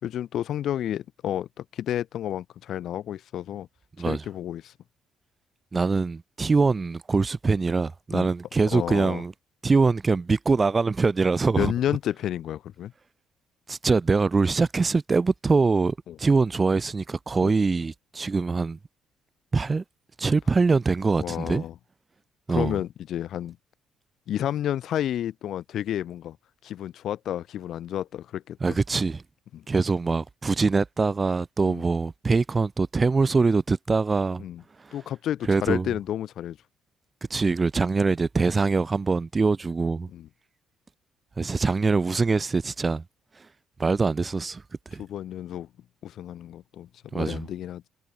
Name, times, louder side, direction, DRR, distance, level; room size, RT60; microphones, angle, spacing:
voice 1, 0.0-3.7 4.1-4.7 8.1-8.3 8.7-9.2 11.6-12.9 16.1-16.2 17.4-17.5 21.2-21.7 22.5-23.6 24.3-26.4 26.6-28.6 29.5-29.6 31.6-31.8 34.4-34.6 34.9-36.6 40.1-40.3 45.0-45.7 46.0-47.9, left 11 dB, 60° left, 7.0 m, -31 dB
voice 2, 5.7-9.3 9.6-11.7 13.7-18.8 19.5-19.8 20.2-21.6 22.5-22.8 28.6-29.2 29.7-34.4 35.5-35.9 37.3-40.1 41.4-43.0 43.8-44.6 44.9-45.0 47.1-47.5, right 4 dB, 20° right, 4.8 m, -23 dB
cardioid pair, 150°, 0 cm